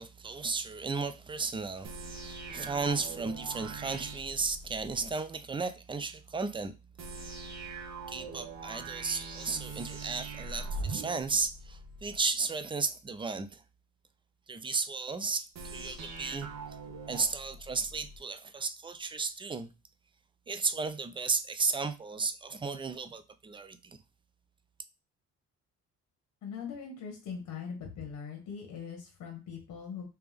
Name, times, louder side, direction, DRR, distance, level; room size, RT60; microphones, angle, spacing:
voice 1, 0.0-6.7 8.1-13.6 14.5-16.5 17.1-19.7 20.5-24.0, right 4 dB, 15° right, 0.4 m, -34 dB
sound 1, 1.8-5.1 7.0-12.2 15.5-18.2, right 3 dB, 60° right, 1.0 m, -42 dB
voice 2, 26.4-30.1, left 6 dB, 70° left, 1.2 m, -41 dB
3.4 x 2.9 x 3.4 m
cardioid pair, 90°, 30 cm